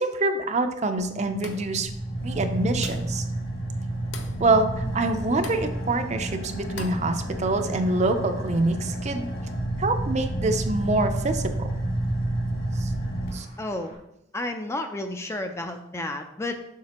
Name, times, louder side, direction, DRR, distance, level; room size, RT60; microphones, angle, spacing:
voice 1, 0.0-1.9 2.2-3.2 4.4-9.2 9.8-11.7 12.8-12.9 13.3-13.5, right 2 dB, 40° right, 7 dB, 0.5 m, -25 dB
Car / Idling, 1.0-13.9, right 1 dB, 55° left, 2.4 m, -30 dB
sound 1, 1.4-1.8 2.8-3.2 4.1-4.4 5.4-5.7 6.8-7.1, left 4 dB, 85° left, 0.8 m, -40 dB
voice 2, 13.6-13.9 14.3-16.7, left 2 dB, 15° left, 6 dB, 0.4 m, -31 dB
7.4 x 5.6 x 2.9 m, 0.83 s
head